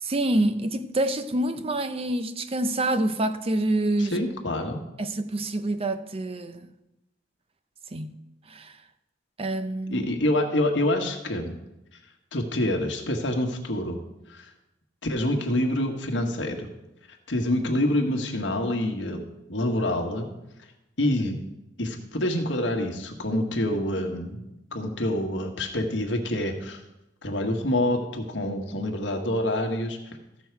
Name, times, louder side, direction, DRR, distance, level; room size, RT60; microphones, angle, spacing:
voice 1, 0.0-4.2 5.0-6.7 7.9-8.1 8.5-8.8 9.4-10.1, right 1 dB, 30° right, 0.6 m, -27 dB
voice 2, 4.0-4.8 9.9-11.5 12.3-14.0 14.3-14.5 15.0-16.7 17.3-19.2 19.5-20.3 21.0-21.3 21.8-24.4 24.7-26.8 27.2-30.0, left 1 dB, 80° left, 1.4 m, -26 dB
14.5 x 6.3 x 4.6 m
head